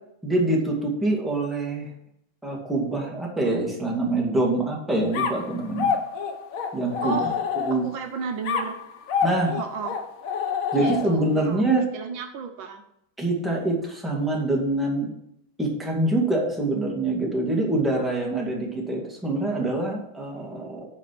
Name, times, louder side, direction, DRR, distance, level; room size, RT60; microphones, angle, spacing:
voice 1, 0.2-1.9 2.4-5.9 6.7-7.2 7.6-7.8 9.2-9.5 10.7-11.8 13.2-15.1 15.6-20.9, right 2 dB, ahead, -2 dB, 2.0 m, -25 dB
sound 1, 5.1-8.0 8.5-11.3, left 6 dB, 55° left, 1.0 m, -28 dB
voice 2, 7.0-7.3 7.7-8.7 9.5-10.0 10.7-11.6 11.9-12.8, right 5 dB, 75° right, 5 dB, 1.7 m, -33 dB
9.1 x 5.4 x 5.9 m, 0.76 s
omnidirectional pair, 2.2 m